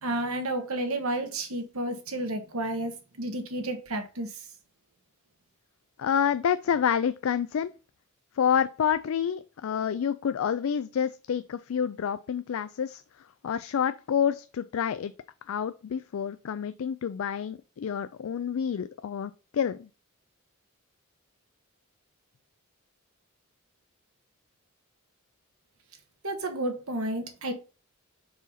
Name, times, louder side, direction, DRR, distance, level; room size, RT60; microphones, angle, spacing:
voice 1, 0.0-4.3 26.2-27.5, right 1 dB, 75° right, 1.4 m, -31 dB
voice 2, 6.0-7.7 8.4-13.0 13.4-15.1 15.5-19.9, left 8 dB, 65° left, 0.3 m, -28 dB
4.8 x 4.0 x 5.7 m
head